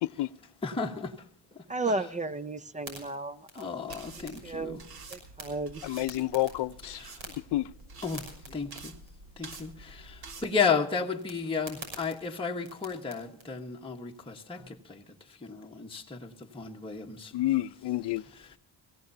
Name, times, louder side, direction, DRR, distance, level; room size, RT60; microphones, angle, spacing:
voice 1, 0.6-1.1 3.6-4.8 6.8-7.1 8.0-8.2 8.5-8.9 9.4-9.7 10.4-14.6 15.5-16.3 16.5-17.3, left 5 dB, 10° left, 1.3 m, -32 dB
voice 2, 1.7-3.7 4.4-4.8 5.1-5.9, right 2 dB, 15° right, 0.5 m, -33 dB
sound 1, 2.8-13.5, right 2 dB, 85° right, 6.3 m, -50 dB
sound 2, 3.9-10.5, right 3 dB, 55° right, 1.8 m, -49 dB
voice 3, 5.8-7.0 7.5-7.7 17.3-18.2, left 16 dB, 65° left, 0.6 m, -29 dB
23.0 x 16.5 x 2.8 m
cardioid pair, 120°, 45 cm